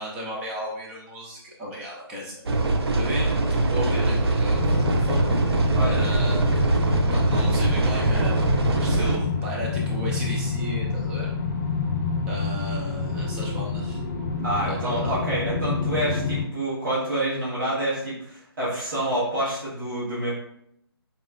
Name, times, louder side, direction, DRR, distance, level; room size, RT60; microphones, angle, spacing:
voice 1, 0.0-2.4 2.9-5.3 5.6-11.3 12.3-14.0 14.6-15.3, equal, 5° right, -4 dB, 0.3 m, -35 dB
sound 1, 2.5-9.2, right 2 dB, 70° right, 0.6 m, -22 dB
sound 2, 4.5-16.4, left 4 dB, 40° left, 0.6 m, -28 dB
voice 2, 14.4-20.3, right 1 dB, 50° right, -8 dB, 1.1 m, -27 dB
4.1 x 2.0 x 2.3 m, 0.73 s
figure-of-eight pair, 150°, 14 cm